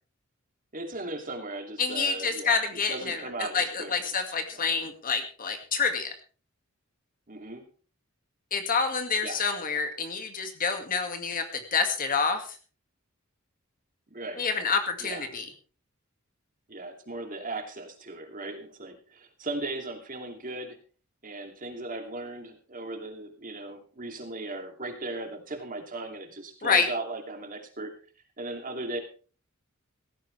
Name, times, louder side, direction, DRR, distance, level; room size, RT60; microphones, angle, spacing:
voice 1, 0.7-2.6 2.9-3.9 4.5-4.7 7.3-7.6 9.2-9.4 14.1-14.4 15.0-15.2 16.7-20.8 21.2-27.9 28.4-29.0, right 2 dB, 40° right, 4 dB, 2.8 m, -37 dB
voice 2, 1.8-6.1 8.5-12.6 14.4-15.5 26.6-26.9, left 5 dB, 40° left, 6 dB, 2.1 m, -28 dB
17.0 x 14.0 x 3.4 m, 0.38 s
head